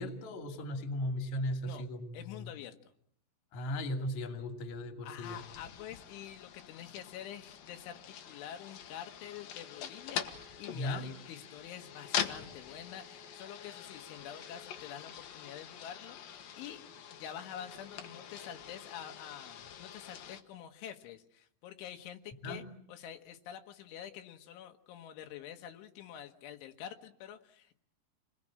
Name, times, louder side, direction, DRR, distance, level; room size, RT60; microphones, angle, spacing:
voice 1, 0.0-2.5 3.5-5.4 10.7-11.1 22.4-22.6, left 1 dB, 45° left, 5 dB, 3.2 m, -37 dB
voice 2, 2.1-2.8 5.0-16.8 17.1-22.6 22.9-27.8, left 10 dB, 80° left, 5 dB, 3.8 m, -47 dB
sound 1, 5.2-20.4, left 9 dB, 60° left, 2.7 m, -44 dB
28.5 x 21.0 x 8.8 m, 0.71 s
omnidirectional pair, 5.4 m